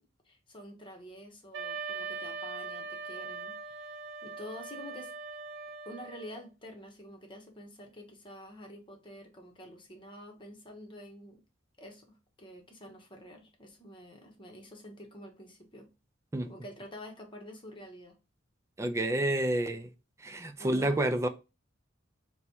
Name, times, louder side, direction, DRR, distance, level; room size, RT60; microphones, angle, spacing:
voice 1, 0.3-5.1 5.8-11.4 11.8-15.9 16.5-18.2 20.6-21.0, equal, 25° left, 1.0 m, -48 dB
Wind instrument woodwind instrument, 1.5-6.4, right 4 dB, 65° right, 0.6 m, -41 dB
voice 2, 18.8-19.9 20.2-21.3, right 1 dB, 15° right, 0.3 m, -29 dB
4.1 x 2.3 x 4.3 m
head